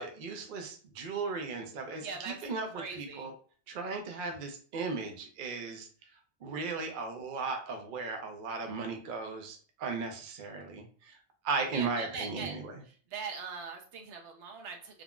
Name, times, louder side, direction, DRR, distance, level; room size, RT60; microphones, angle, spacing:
voice 1, 0.0-3.3 3.7-5.9 6.4-11.1 11.4-12.8, right 4 dB, 55° right, 4 dB, 0.6 m, -36 dB
voice 2, 2.0-2.4 2.7-3.3 11.7-12.6 13.1-15.0, right 5 dB, 80° right, 2 dB, 0.9 m, -41 dB
3.6 x 2.0 x 2.2 m, 0.43 s
omnidirectional pair, 1.2 m